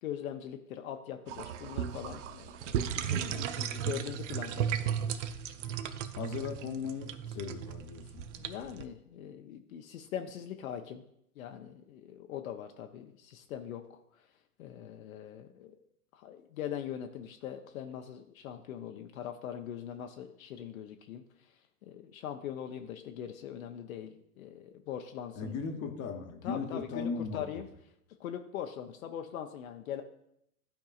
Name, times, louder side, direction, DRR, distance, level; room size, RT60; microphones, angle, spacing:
voice 1, 0.0-2.8 3.0-5.0 8.4-11.0 11.4-14.0 14.6-15.7 16.1-21.2 21.8-25.5 26.4-27.7 28.2-30.0, left 9 dB, 65° left, 5 dB, 0.7 m, -41 dB
sound 1, 1.3-8.8, right 9 dB, 55° right, 0.6 m, -35 dB
voice 2, 6.2-8.2 25.4-27.6, left 5 dB, 30° left, 4 dB, 0.9 m, -37 dB
12.0 x 4.6 x 2.4 m, 0.76 s
hypercardioid pair, 105°, 44 cm